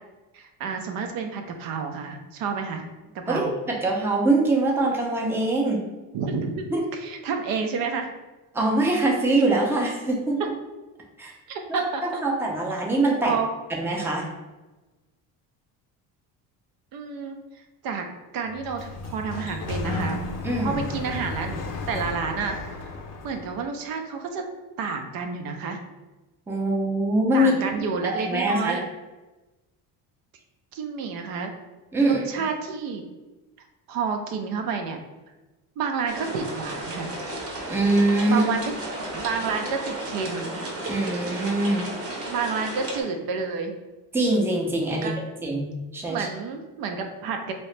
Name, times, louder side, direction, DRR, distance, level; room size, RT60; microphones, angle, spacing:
voice 1, 0.3-2.9 3.2-3.5 6.1-8.1 11.5-12.2 13.2-13.5 16.9-17.4 17.8-18.1 18.3-20.2 20.6-22.9 23.2-24.5 24.8-25.8 27.3-28.8 30.7-31.5 32.0-33.0 33.6-35.0 35.8-37.1 38.2-38.7 39.1-40.5 42.3-43.7 44.9-45.1 46.1-47.5, right 5 dB, 65° right, 5 dB, 0.5 m, -30 dB
voice 2, 3.3-5.8 6.7-6.8 8.5-10.4 11.2-11.3 12.2-13.3 13.7-14.3 20.4-20.8 26.5-27.5 28.0-28.8 31.9-32.2 37.7-38.4 40.9-41.9 44.1-45.1 45.4-46.2, right 2 dB, 5° right, -1 dB, 0.5 m, -23 dB
Sliding door, 18.5-23.6, left 3 dB, 45° left, 0.5 m, -33 dB
sound 1, 36.1-43.0, right 1 dB, 40° right, 0.8 m, -33 dB
3.0 x 2.8 x 3.2 m, 1.1 s
cardioid pair, 130°, 38 cm